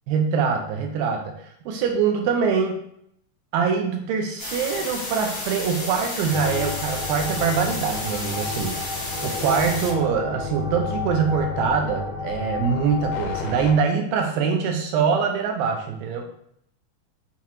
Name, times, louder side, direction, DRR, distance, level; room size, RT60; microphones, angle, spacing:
voice 1, 0.1-1.3 1.7-2.8 3.5-8.9 9.2-16.3, right 6 dB, 80° right, 3 dB, 2.1 m, -23 dB
sound 1, 4.4-9.9, left 1 dB, 55° left, 0.7 m, -32 dB
sound 2, 6.3-13.7, left 5 dB, 75° left, 2.1 m, -31 dB
6.9 x 2.4 x 2.8 m, 0.72 s
omnidirectional pair, 4.2 m